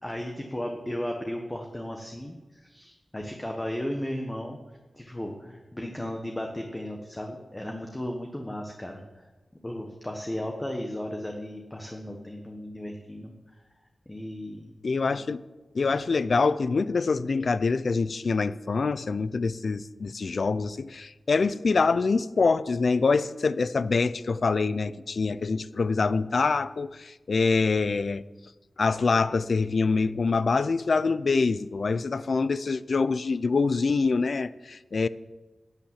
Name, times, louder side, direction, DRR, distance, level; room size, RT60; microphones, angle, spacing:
voice 1, 0.0-4.6 4.9-9.3 9.6-13.6 14.1-14.7, left 1 dB, 15° left, 1.2 m, -35 dB
voice 2, 14.8-15.4 15.7-28.2 28.8-35.1, left 4 dB, 60° left, 0.5 m, -25 dB
12.0 x 8.8 x 7.4 m
wide cardioid pair, 125°, 0 cm